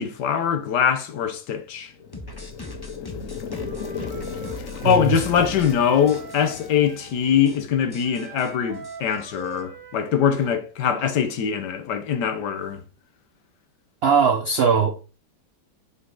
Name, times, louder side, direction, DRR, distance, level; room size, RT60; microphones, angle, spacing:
voice 1, 0.0-1.9 4.8-12.8, left 8 dB, 75° left, 1.5 m, -22 dB
sound 1, 1.8-7.9, left 7 dB, 60° left, 1.0 m, -36 dB
sound 2, 2.1-5.8 6.1-6.7 7.0-7.1 7.4-7.6 7.9-9.6, left 1 dB, 15° left, 1.0 m, -39 dB
Wind instrument woodwind instrument, 3.5-7.2 8.0-10.6, right 5 dB, 90° right, 2.3 m, -41 dB
voice 2, 14.0-15.0, right 6 dB, 65° right, 0.6 m, -19 dB
6.3 x 5.6 x 3.8 m
omnidirectional pair, 1.9 m